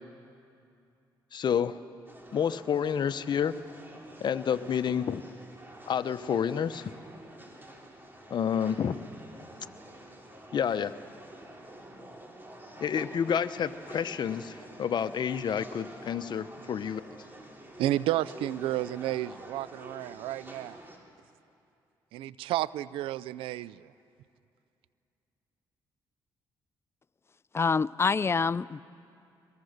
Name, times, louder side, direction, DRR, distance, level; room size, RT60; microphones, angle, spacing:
voice 1, 1.3-1.8 2.3-3.6 4.2-5.2 5.9-6.9 8.3-9.0 10.5-10.9 12.8-17.0, left 8 dB, 55° left, 12 dB, 0.8 m, -29 dB
sound 1, 2.1-21.0, right 1 dB, 25° right, 3.6 m, -48 dB
voice 2, 17.8-20.8 22.1-23.9, right 14 dB, 80° right, 19 dB, 0.4 m, -31 dB
voice 3, 27.5-28.8, left 5 dB, 30° left, 19 dB, 0.5 m, -26 dB
23.0 x 22.0 x 6.6 m, 2.6 s
supercardioid pair, 60°, 9 cm